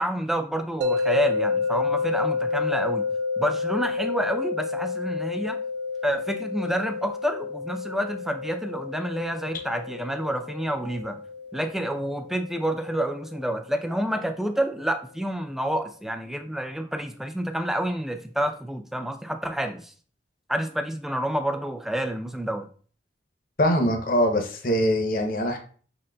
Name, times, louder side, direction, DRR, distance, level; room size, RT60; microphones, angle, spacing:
voice 1, 0.0-3.1 3.4-5.6 6.0-11.2 11.5-19.9 20.5-22.7, right 1 dB, ahead, 6 dB, 0.3 m, -28 dB
sound 1, 0.8-13.9, left 4 dB, 75° right, 0.5 m, -30 dB
voice 2, 23.6-25.6, equal, 50° left, 4 dB, 0.7 m, -23 dB
5.5 x 3.8 x 2.2 m, 0.44 s
head